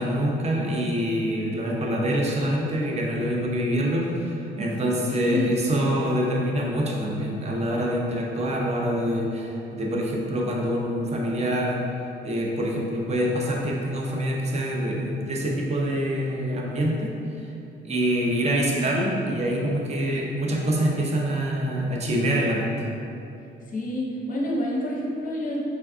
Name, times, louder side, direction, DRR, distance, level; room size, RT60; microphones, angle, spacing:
voice 1, 0.0-11.8 12.2-17.1 17.4-17.5 17.8-22.9, equal, 35° right, -1 dB, 0.5 m, -25 dB
voice 2, 5.1-5.5 23.7-25.6, left 1 dB, 45° left, -3 dB, 0.7 m, -28 dB
4.4 x 2.3 x 2.4 m, 2.7 s
cardioid pair, 90°, 20 cm